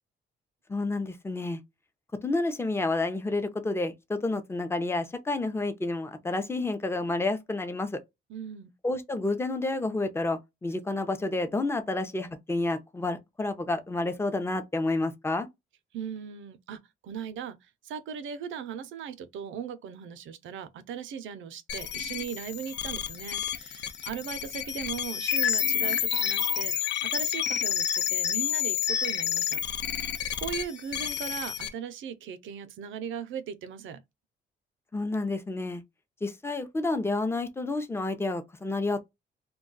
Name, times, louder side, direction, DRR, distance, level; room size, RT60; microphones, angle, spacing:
voice 1, 0.7-1.6 2.2-8.0 8.8-15.5 34.9-35.8 36.2-39.1, left 2 dB, 10° left, 0.6 m, -30 dB
voice 2, 8.3-8.7 15.9-29.6 29.9-30.0 30.4-34.0, right 7 dB, 75° right, 0.5 m, -38 dB
sound 1, 21.7-31.7, left 9 dB, 60° left, 0.5 m, -29 dB
2.3 x 2.2 x 3.8 m
cardioid pair, 90°, 20 cm